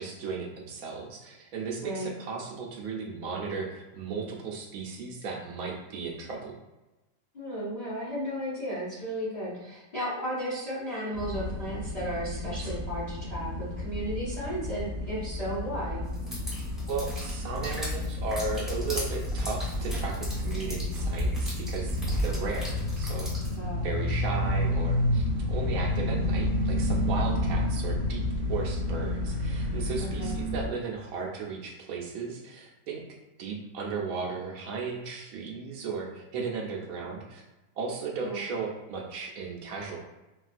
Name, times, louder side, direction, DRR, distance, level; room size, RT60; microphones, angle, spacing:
voice 1, 0.0-6.6 16.9-23.3 23.8-28.2 28.5-33.0 33.4-37.4 37.8-40.0, right 4 dB, 70° right, -1 dB, 0.9 m, -35 dB
voice 2, 1.8-2.1 7.3-16.0 23.6-23.8 30.0-30.3 38.2-38.4, equal, 25° left, -9 dB, 1.0 m, -34 dB
sound 1, 11.1-30.7, left 1 dB, 45° right, 0.5 m, -31 dB
sound 2, 16.1-23.6, equal, ahead, 0.7 m, -34 dB
3.6 x 2.3 x 2.5 m, 1.0 s
omnidirectional pair, 1.8 m